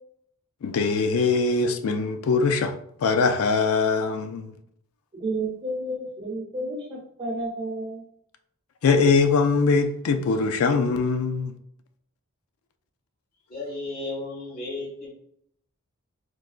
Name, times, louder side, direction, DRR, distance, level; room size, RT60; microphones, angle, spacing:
voice 1, 0.6-2.7 3.0-4.5 8.8-11.5, left 4 dB, 70° left, 0.4 m, -22 dB
voice 2, 5.2-8.0, right 1 dB, 30° right, 0.9 m, -31 dB
voice 3, 13.5-15.2, left 2 dB, 40° left, 1.4 m, -34 dB
3.9 x 2.2 x 2.4 m
head